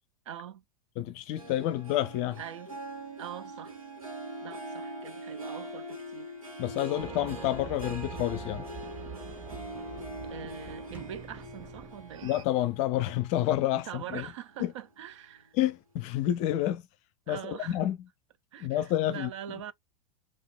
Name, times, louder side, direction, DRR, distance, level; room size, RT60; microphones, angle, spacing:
voice 1, 0.3-0.6 2.4-2.8 3.2-3.8 4.4-6.4 10.2-12.3 13.7-15.5 17.3-17.9 18.5-19.7, right 10 dB, 60° right, 0.7 m, -43 dB
voice 2, 1.0-2.4 6.6-8.6 12.2-14.3 14.6-14.7 15.6-16.8 17.3-18.0 18.6-19.3, left 13 dB, 40° left, 0.5 m, -29 dB
Harp, 1.4-14.1 14.5-14.9 15.4-15.5, equal, 90° right, 1.4 m, -43 dB
sound 1, 7.0-12.4, right 9 dB, 25° right, 0.5 m, -45 dB
sound 2, 10.9-12.9, right 4 dB, 10° right, 1.0 m, -52 dB
3.7 x 2.5 x 3.7 m
figure-of-eight pair, 90°, 17 cm